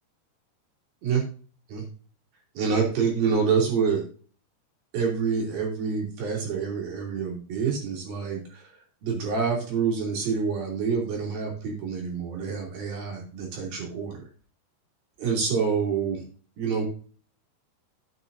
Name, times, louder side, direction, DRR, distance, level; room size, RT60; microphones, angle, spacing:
voice 1, 2.5-4.0 4.9-8.7 9.0-14.3 15.2-16.3 16.6-16.8, right 5 dB, 60° right, -1 dB, 4.7 m, -27 dB
13.0 x 8.4 x 2.7 m, 0.40 s
omnidirectional pair, 4.9 m